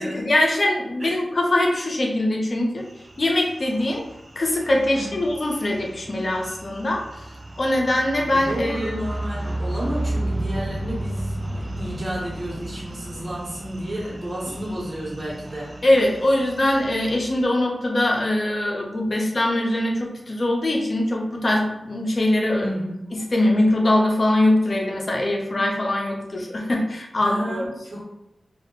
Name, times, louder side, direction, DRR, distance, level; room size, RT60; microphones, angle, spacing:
voice 1, 0.0-2.8 3.2-4.0 4.4-7.0 7.6-9.0 15.8-22.7 23.1-27.7, left 1 dB, 60° left, 0 dB, 0.6 m, -22 dB
sound 1, 2.9-17.4, right 1 dB, 35° right, 0.4 m, -33 dB
voice 2, 8.3-15.7 22.6-23.0 27.2-28.0, equal, 50° right, -5 dB, 1.1 m, -31 dB
2.4 x 2.2 x 2.9 m, 0.89 s
cardioid pair, 40°, 0 cm